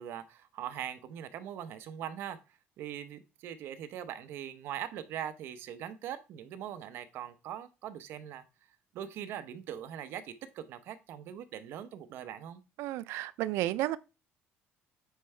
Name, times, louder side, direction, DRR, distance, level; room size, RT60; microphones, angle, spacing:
voice 1, 0.0-2.4 2.8-8.4 8.9-12.6, right 10 dB, 60° right, 0.8 m, -41 dB
voice 2, 12.8-14.0, right 15 dB, 90° right, 0.4 m, -32 dB
9.0 x 4.6 x 3.3 m
cardioid pair, 170°, 4 cm